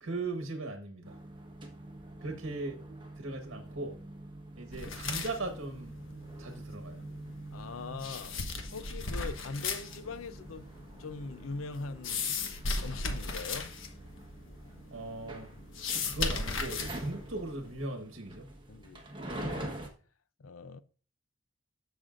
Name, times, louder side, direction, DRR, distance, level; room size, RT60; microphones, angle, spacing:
voice 1, 0.0-1.2 2.2-2.8 3.2-4.0 4.6-6.0 6.4-7.0 14.9-15.5 16.1-18.5, right 2 dB, 65° right, 1.3 m, -38 dB
sound 1, 1.0-19.9, right 1 dB, 25° right, 1.3 m, -46 dB
sound 2, 4.7-17.8, left 4 dB, 70° left, 1.2 m, -38 dB
voice 2, 7.5-8.4 8.7-10.7 11.0-12.4 12.8-13.7 18.7-19.8 20.4-20.8, left 4 dB, 85° left, 0.6 m, -41 dB
13.5 x 6.0 x 2.5 m
head